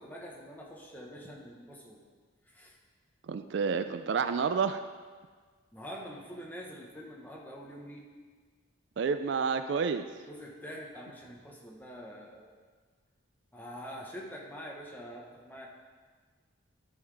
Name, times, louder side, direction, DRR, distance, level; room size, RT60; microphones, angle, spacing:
voice 1, 0.0-2.0 2.5-2.8 5.7-8.1 10.3-12.5 13.5-15.7, equal, 10° left, -2 dB, 1.0 m, -45 dB
voice 2, 3.3-4.8 9.0-10.1, right 5 dB, 60° right, 10 dB, 0.3 m, -29 dB
12.5 x 5.6 x 3.4 m, 1.5 s
head